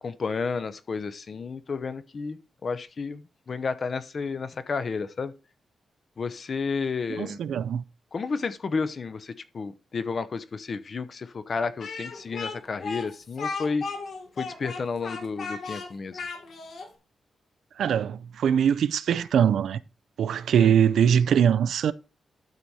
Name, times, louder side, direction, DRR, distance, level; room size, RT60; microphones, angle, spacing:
voice 1, 0.0-5.3 6.2-7.4 8.1-13.9 14.4-16.2 20.6-20.7, left 4 dB, 40° left, 0.7 m, -31 dB
voice 2, 7.1-7.8 17.8-19.8 20.2-21.9, right 8 dB, 85° right, 0.4 m, -22 dB
Speech, 11.8-16.9, left 4 dB, 60° left, 1.5 m, -36 dB
12.0 x 4.2 x 4.7 m
wide cardioid pair, 160°, 0 cm